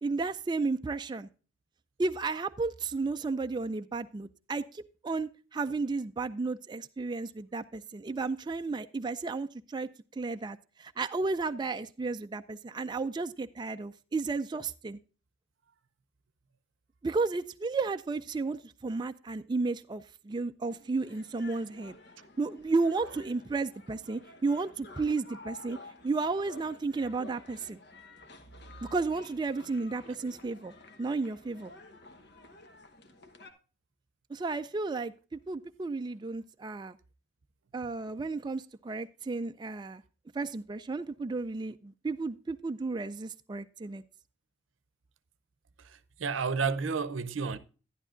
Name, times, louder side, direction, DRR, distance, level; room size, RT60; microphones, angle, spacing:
voice 1, 0.0-1.3 2.0-9.9 10.2-15.0 17.0-22.0 22.4-25.8 26.0-27.8 28.9-30.7 31.0-31.7 34.3-37.0 37.7-40.0 40.3-44.0, right 3 dB, 25° right, 0.3 m, -33 dB
sound 1, 20.6-33.5, left 2 dB, 60° left, 1.1 m, -52 dB
voice 2, 45.8-47.6, right 5 dB, 90° right, 0.7 m, -31 dB
11.5 x 11.0 x 2.5 m
head